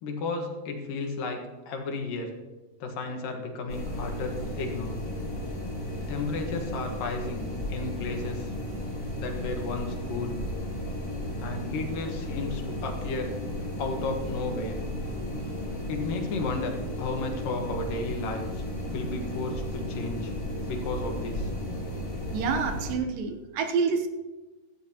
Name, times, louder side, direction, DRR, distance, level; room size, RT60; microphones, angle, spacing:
voice 1, 0.0-2.3 2.8-5.0 6.1-8.5 9.2-10.4 11.4-13.3 13.8-14.8 15.9-18.6 18.9-20.3 20.7-21.5, left 3 dB, 70° left, 3 dB, 3.0 m, -33 dB
sound 1, 3.7-22.9, left 1 dB, 10° left, 3.3 m, -34 dB
voice 2, 22.3-24.1, right 5 dB, 75° right, 6 dB, 2.6 m, -27 dB
16.5 x 14.0 x 2.9 m, 1.2 s
omnidirectional pair, 4.2 m